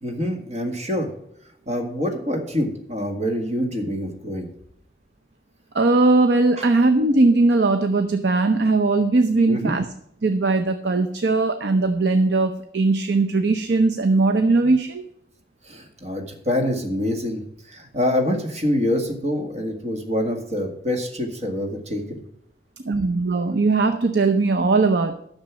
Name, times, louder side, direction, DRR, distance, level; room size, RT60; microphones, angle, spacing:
voice 1, 0.0-1.1 1.7-4.5 6.6-6.7 9.5-9.8 15.6-17.4 17.7-22.2, left 1 dB, 40° right, 3 dB, 1.8 m, -25 dB
voice 2, 5.7-9.9 10.2-15.1 22.8-25.1, right 3 dB, 80° right, 7 dB, 0.7 m, -19 dB
10.5 x 6.7 x 6.1 m, 0.75 s
head